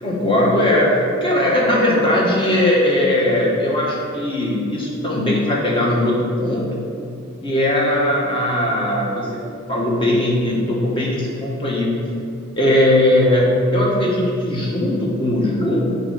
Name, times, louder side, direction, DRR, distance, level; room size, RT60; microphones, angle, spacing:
voice 1, 0.0-6.8 7.4-12.0 12.6-16.0, left 1 dB, 25° left, -4 dB, 1.4 m, -19 dB
6.9 x 4.4 x 5.7 m, 2.5 s
head